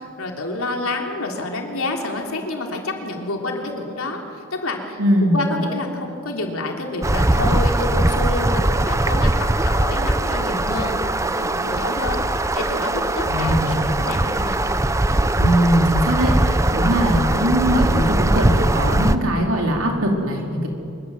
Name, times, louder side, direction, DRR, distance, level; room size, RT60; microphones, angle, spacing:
voice 1, 0.0-5.0 5.3-14.6, left 2 dB, 80° left, 1 dB, 3.4 m, -28 dB
voice 2, 5.0-5.4 13.2-13.8 15.4-20.7, equal, 75° right, 1 dB, 4.2 m, -20 dB
sound 1, 7.0-19.2, right 1 dB, 15° right, 0.7 m, -20 dB
24.5 x 22.5 x 7.8 m, 2.6 s
head